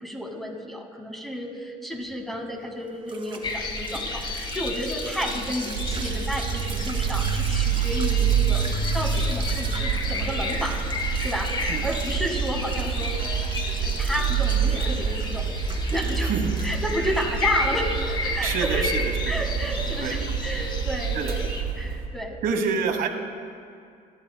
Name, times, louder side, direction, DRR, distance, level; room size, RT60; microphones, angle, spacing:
voice 1, 0.0-10.8 11.1-13.2 13.8-15.5 15.9-16.3 16.6-18.9 19.3-21.5 21.8-22.4, equal, ahead, 1 dB, 1.7 m, -31 dB
sound 1, 2.1-21.1, right 3 dB, 30° right, 1.9 m, -41 dB
sound 2, 3.4-21.6, left 3 dB, 25° left, 1.3 m, -32 dB
sound 3, 5.7-22.1, right 7 dB, 90° right, 2.2 m, -27 dB
voice 2, 18.4-19.4 20.0-20.2 21.1-21.3 22.4-23.1, right 5 dB, 55° right, 6 dB, 1.3 m, -27 dB
27.5 x 11.0 x 2.2 m, 2.3 s
cardioid pair, 110°, 17 cm